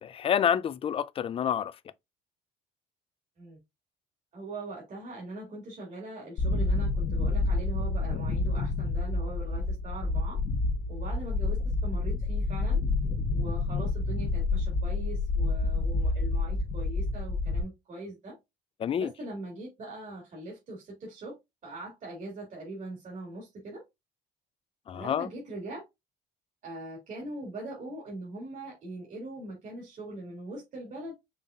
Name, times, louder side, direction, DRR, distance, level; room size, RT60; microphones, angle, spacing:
voice 1, 0.0-1.8 18.8-19.1 24.9-25.3, left 8 dB, 35° left, 0.4 m, -28 dB
voice 2, 4.3-10.4 10.9-12.8 13.3-18.3 19.0-21.4 21.6-23.8 24.9-25.8 26.6-31.1, right 1 dB, 50° right, 2.5 m, -41 dB
sound 1, 6.4-17.6, left 3 dB, 65° left, 1.6 m, -28 dB
5.5 x 3.7 x 2.5 m
cardioid pair, 110°, 17 cm